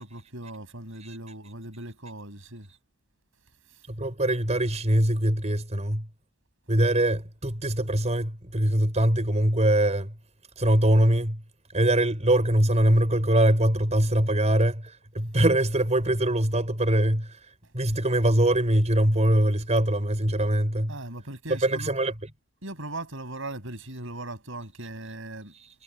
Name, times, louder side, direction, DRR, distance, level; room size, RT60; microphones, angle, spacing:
voice 1, 0.0-2.7 20.9-21.9 22.6-25.5, right 2 dB, 70° right, 7.8 m, -38 dB
voice 2, 3.9-6.1 6.7-10.1 10.6-11.4 11.7-17.4 17.7-20.9 21.6-22.1, right 1 dB, 35° right, 5.2 m, -23 dB
head